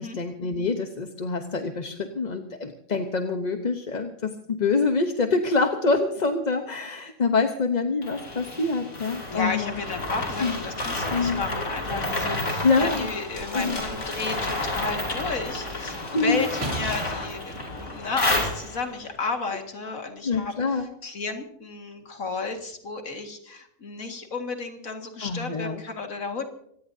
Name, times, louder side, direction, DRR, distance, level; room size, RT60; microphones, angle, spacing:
voice 1, 0.0-9.7 10.4-10.6 11.1-11.4 12.6-13.1 13.5-13.8 16.1-16.5 20.2-20.9 25.2-25.8, left 4 dB, 35° left, 5 dB, 1.0 m, -25 dB
sound 1, 8.0-19.0, left 2 dB, 60° left, 3.7 m, -31 dB
voice 2, 9.3-26.4, left 4 dB, 75° left, 4 dB, 2.4 m, -33 dB
sound 2, 13.4-14.2 16.6-18.1 18.9-19.1, right 1 dB, 55° right, 3.0 m, -37 dB
25.0 x 18.0 x 2.7 m, 0.70 s
omnidirectional pair, 1.4 m